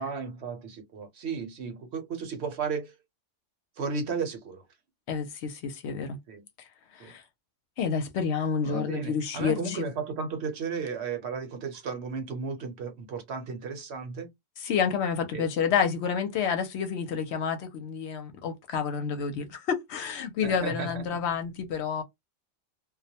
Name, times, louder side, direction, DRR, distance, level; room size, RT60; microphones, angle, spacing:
voice 1, 0.0-2.9 3.8-4.6 6.3-6.4 7.0-7.1 8.6-14.3 15.3-15.5 20.4-21.0, right 5 dB, 65° right, 0.9 m, -34 dB
voice 2, 5.1-6.2 6.6-6.7 6.9-7.2 7.8-9.8 14.6-22.0, left 6 dB, 65° left, 0.8 m, -29 dB
2.3 x 2.1 x 2.7 m
omnidirectional pair, 1.3 m